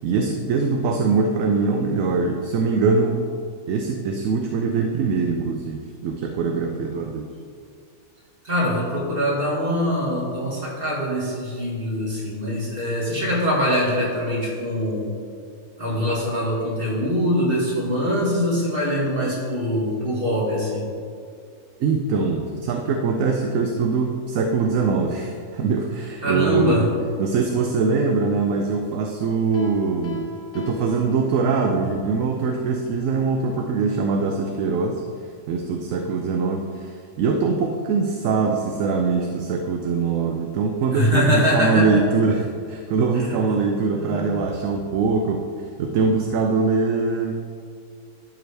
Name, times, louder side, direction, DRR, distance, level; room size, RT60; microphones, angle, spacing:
voice 1, 0.0-3.2 3.7-7.3 21.8-26.9 27.2-30.2 30.5-35.0 35.5-45.4 45.8-47.6, right 4 dB, 70° right, 3 dB, 0.9 m, -22 dB
voice 2, 8.4-15.1 15.8-20.9 26.2-26.8 40.9-41.9 43.3-43.4 43.9-44.3, equal, 40° right, -4 dB, 2.0 m, -23 dB
Piano, 29.5-31.8, left 1 dB, 55° left, 1.4 m, -35 dB
12.0 x 4.9 x 3.3 m, 2.2 s
omnidirectional pair, 1.6 m